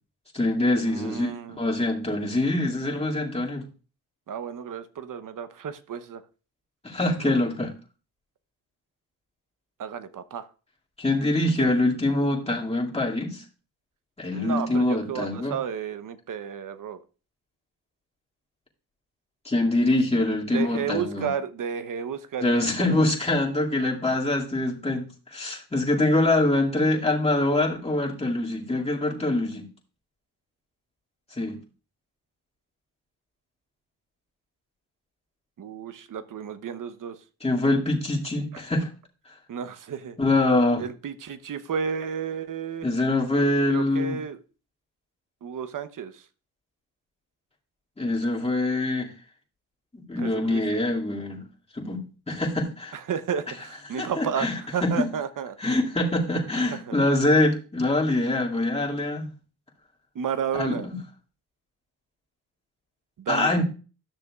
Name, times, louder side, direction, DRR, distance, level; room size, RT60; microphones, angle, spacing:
voice 1, 0.3-3.6 6.8-7.7 11.0-13.4 14.2-15.5 19.4-21.3 22.4-29.7 31.3-31.6 37.4-38.9 40.2-40.8 42.8-44.2 48.0-49.1 49.9-51.5 51.7-53.0 54.0-55.1 55.6-59.3 60.5-61.0 63.3-63.6, left 2 dB, 15° left, -3 dB, 2.4 m, -24 dB
voice 2, 0.8-1.7 4.3-6.2 7.2-7.3 9.8-10.5 11.6-11.7 14.3-17.0 20.5-23.1 35.6-37.2 39.5-40.2 40.8-42.9 43.7-44.4 45.4-46.2 50.2-50.6 52.9-54.5 54.7-55.6 56.7-56.9 60.1-60.9 63.2-63.6, right 7 dB, 60° right, 12 dB, 0.9 m, -32 dB
13.0 x 6.5 x 2.4 m, 0.35 s
cardioid pair, 75°, 37 cm